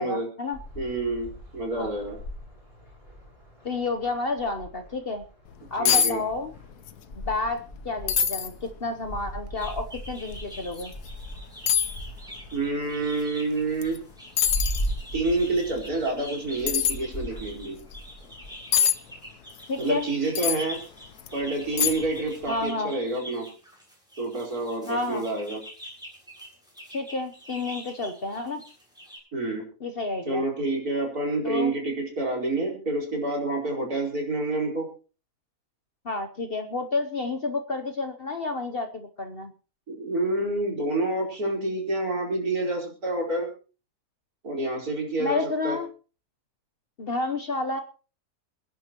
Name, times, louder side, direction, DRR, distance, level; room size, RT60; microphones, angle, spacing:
voice 1, 0.0-0.6 1.8-1.9 3.6-5.2 5.7-6.5 7.2-10.9 19.7-20.1 22.5-22.9 24.9-25.2 26.9-28.6 29.8-30.4 31.4-31.7 36.0-39.5 45.2-45.9 47.0-47.8, left 3 dB, 45° left, 7 dB, 1.0 m, -30 dB
sound 1, 0.5-18.5, equal, 60° left, 7.3 m, -39 dB
voice 2, 0.8-2.2 5.8-6.2 12.5-14.0 15.1-17.8 19.8-20.8 21.3-23.4 24.2-25.6 29.3-29.6 30.3-34.9 39.9-43.5 44.4-45.8, right 2 dB, 65° right, -1 dB, 4.9 m, -28 dB
sound 2, 5.5-5.6 5.8-6.1 6.4-7.0 7.3-7.4 8.1-8.5 9.1-9.2 10.7-10.9 11.7-11.9 13.8-14.0 14.4-14.9 16.7-17.0 18.7-19.0 20.3-20.6 21.2-21.3 21.8-22.2 22.5-22.6, left 8 dB, 75° left, 1.4 m, -23 dB
sound 3, 9.5-29.2, equal, ahead, 7.2 m, -45 dB
27.0 x 10.5 x 3.0 m, 0.36 s
omnidirectional pair, 1.7 m